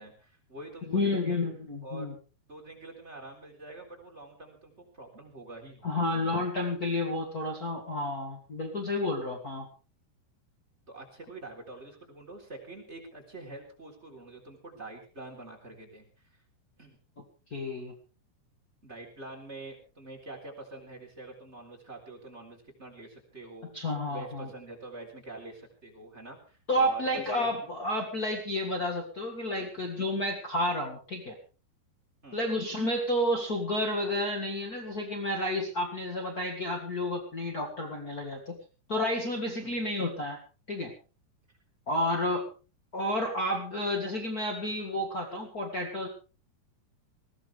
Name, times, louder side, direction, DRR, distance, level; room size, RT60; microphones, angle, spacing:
voice 1, 0.0-1.4 1.8-2.1 2.5-5.9 10.9-16.1 16.8-17.0 18.8-27.5 29.6-29.7 32.2-32.5 39.6-39.9, right 2 dB, 15° right, 0 dB, 3.5 m, -46 dB
voice 2, 0.9-2.1 5.8-9.7 17.5-17.9 23.7-24.5 26.7-31.4 32.3-38.6 38.9-40.4 40.7-40.9 41.9-42.5 42.9-46.1, left 1 dB, 60° left, 2 dB, 0.9 m, -31 dB
20.0 x 17.0 x 3.4 m, 0.35 s
omnidirectional pair, 4.9 m